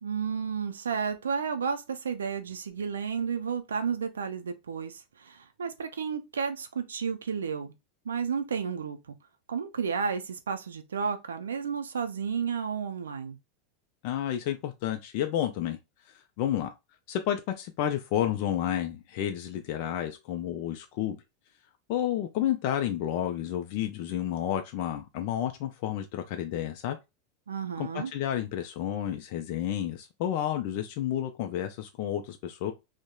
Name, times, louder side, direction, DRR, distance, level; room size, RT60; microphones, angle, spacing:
voice 1, 0.0-7.7 8.1-9.2 9.5-13.4 27.5-28.1, right 6 dB, 85° right, 0.4 m, -32 dB
voice 2, 14.0-15.8 16.4-16.7 17.1-21.2 21.9-27.0 27.8-32.7, left 11 dB, 60° left, 0.4 m, -31 dB
2.8 x 2.1 x 2.3 m
hypercardioid pair, 90°, 0 cm